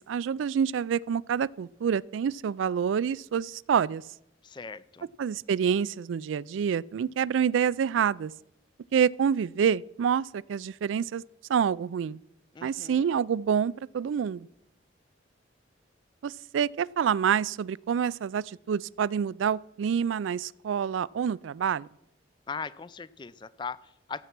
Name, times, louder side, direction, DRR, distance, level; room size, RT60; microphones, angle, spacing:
voice 1, 0.1-4.0 5.2-8.3 8.9-11.2 11.5-12.2 12.6-14.5 16.2-21.9, right 7 dB, 90° right, 0.3 m, -27 dB
voice 2, 4.4-5.1 12.5-13.1 22.5-24.2, left 5 dB, 25° left, 0.4 m, -39 dB
14.5 x 8.3 x 5.9 m
head